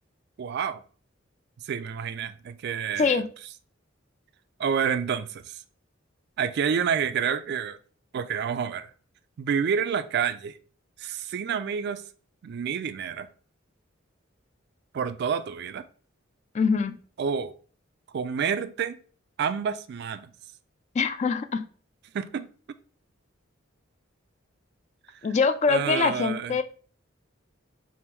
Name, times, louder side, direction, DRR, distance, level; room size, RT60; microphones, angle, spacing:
voice 1, 0.4-0.8 1.6-3.2 4.6-5.6 6.4-7.8 8.1-8.9 9.4-10.6 11.0-12.1 12.4-13.3 14.9-15.8 17.2-17.5 18.1-19.0 19.4-20.3 22.1-22.5 25.7-26.6, right 7 dB, 55° right, 0.3 m, -28 dB
voice 2, 3.0-3.3 16.5-17.0 20.9-21.7 25.2-26.6, left 5 dB, 35° left, 0.3 m, -24 dB
3.5 x 2.5 x 4.4 m
head